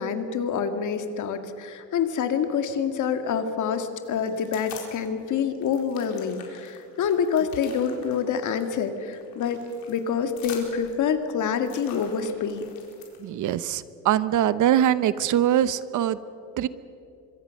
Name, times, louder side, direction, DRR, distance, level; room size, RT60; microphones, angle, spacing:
voice 1, 0.0-9.6 9.9-12.6, left 7 dB, 60° left, 7 dB, 2.1 m, -27 dB
sound 1, 4.0-5.1 5.4-13.3, left 7 dB, 80° left, 4.5 m, -46 dB
voice 2, 13.2-16.2 16.6-16.7, right 11 dB, 60° right, 15 dB, 0.9 m, -22 dB
25.0 x 23.5 x 6.5 m, 2.7 s
cardioid pair, 125°, 35 cm